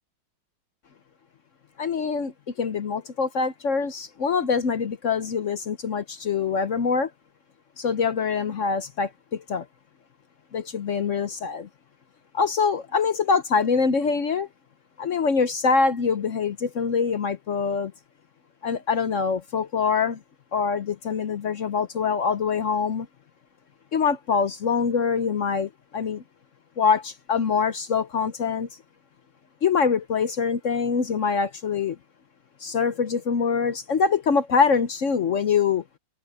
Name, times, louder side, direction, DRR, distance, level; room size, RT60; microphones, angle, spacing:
voice 1, 1.8-2.3 2.6-7.1 7.8-9.7 10.5-11.7 12.3-14.5 15.0-17.9 18.6-20.2 20.5-23.1 23.9-26.2 26.8-28.7 29.6-32.0 32.6-35.8, left 5 dB, 55° left, 0.9 m, -24 dB
omnidirectional pair, 2.2 m